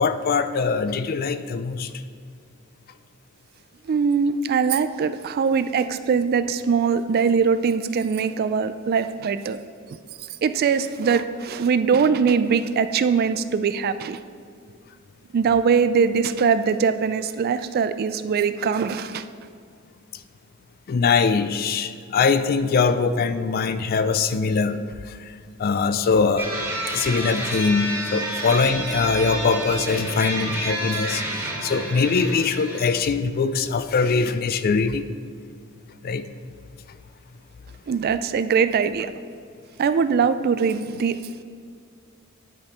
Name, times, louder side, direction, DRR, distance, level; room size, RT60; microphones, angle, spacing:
voice 1, 0.0-1.9 20.9-24.8 25.1-25.2 25.6-26.5 26.9-31.2 31.6-35.1 36.0-36.2, left 5 dB, 45° left, 11 dB, 0.3 m, -22 dB
voice 2, 3.9-9.6 10.4-14.2 15.3-19.2 37.9-39.1 39.8-41.2, right 6 dB, 45° right, 12 dB, 0.3 m, -22 dB
sound 1, 26.4-32.9, right 2 dB, 10° right, 1.6 m, -29 dB
9.6 x 5.2 x 4.4 m, 2.1 s
head